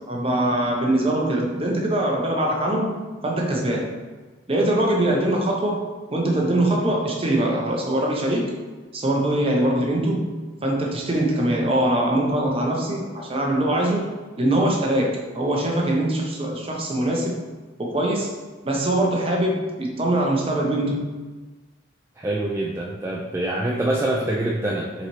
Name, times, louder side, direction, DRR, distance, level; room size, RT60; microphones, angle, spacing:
voice 1, 0.1-3.9 4.5-5.8 6.1-8.5 8.9-10.3 10.6-14.1 14.4-17.4 17.8-18.3 18.6-21.1, right 1 dB, 30° right, -1 dB, 0.7 m, -22 dB
voice 2, 22.2-25.1, right 1 dB, 15° right, -3 dB, 0.3 m, -25 dB
4.1 x 4.0 x 3.0 m, 1.3 s
head